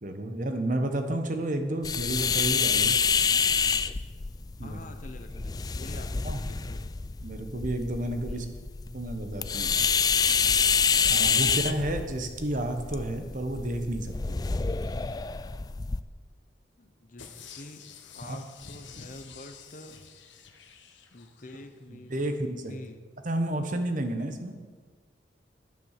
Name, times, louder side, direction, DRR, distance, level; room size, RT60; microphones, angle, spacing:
voice 1, 0.0-3.0 4.6-4.8 6.2-6.4 7.2-8.4 8.9-9.7 11.1-14.4 18.2-18.4 21.9-22.7 23.2-24.6, right 1 dB, 45° right, 6 dB, 1.2 m, -31 dB
sound 1, 1.8-16.0, left 6 dB, 20° left, 0.3 m, -27 dB
voice 2, 4.6-6.9 8.3-8.5 16.8-17.8 18.1-20.0 21.1-22.4 22.7-23.0, left 2 dB, 45° left, 8 dB, 0.9 m, -47 dB
sound 2, 17.2-21.6 22.0-22.1, left 6 dB, 85° left, 1.2 m, -49 dB
10.5 x 9.3 x 6.7 m, 1.5 s
head